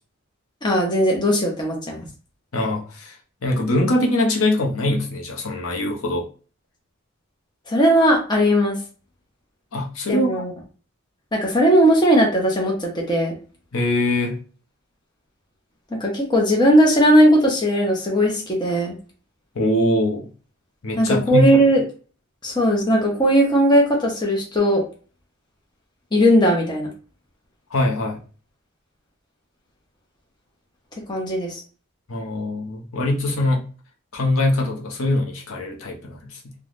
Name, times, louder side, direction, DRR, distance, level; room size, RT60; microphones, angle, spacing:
voice 1, 0.6-2.0 7.7-8.8 10.1-10.5 11.3-13.3 15.9-19.0 21.0-21.8 22.4-24.8 26.1-26.9 31.1-31.6, equal, 20° left, -1 dB, 0.7 m, -18 dB
voice 2, 2.5-3.2 3.4-6.3 9.7-10.4 13.7-14.4 19.5-20.3 20.8-21.5 27.7-28.2 32.1-33.7 34.1-36.5, left 1 dB, 80° left, 1 dB, 0.7 m, -22 dB
3.3 x 2.2 x 2.5 m, 0.37 s
head